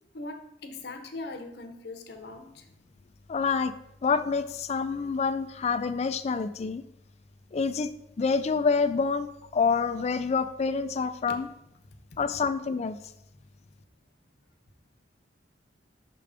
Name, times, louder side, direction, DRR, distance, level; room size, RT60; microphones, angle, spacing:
voice 1, 0.1-2.7, left 2 dB, 60° left, 6 dB, 0.8 m, -40 dB
voice 2, 3.3-3.7 4.0-6.8 7.5-7.9 8.2-11.5 12.2-13.0, left 5 dB, 35° left, 12 dB, 0.3 m, -27 dB
5.9 x 3.4 x 5.0 m, 0.83 s
head